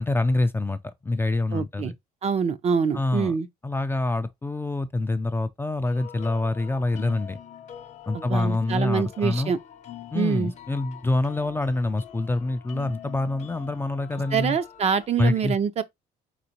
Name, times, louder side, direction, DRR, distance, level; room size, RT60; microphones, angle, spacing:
voice 1, 0.0-1.9 2.9-3.3 3.6-7.4 8.1-9.5 10.1-14.6 15.2-15.6, left 2 dB, 15° left, 0.3 m, -26 dB
voice 2, 1.5-1.9 2.2-3.5 8.1-9.6 10.1-10.5 14.3-15.8, right 6 dB, 40° right, 0.5 m, -25 dB
sound 1, 5.8-15.1, left 10 dB, 45° left, 0.7 m, -44 dB
4.2 x 4.0 x 2.7 m
cardioid pair, 110°, 17 cm